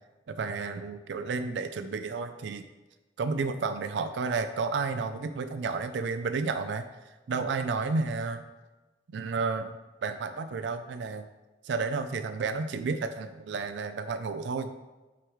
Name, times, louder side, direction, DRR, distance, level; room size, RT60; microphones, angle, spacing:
voice 1, 0.3-2.6 3.2-8.4 9.1-11.3 11.6-14.7, right 4 dB, 75° right, 9 dB, 0.4 m, -31 dB
7.8 x 5.0 x 3.1 m, 1.2 s
head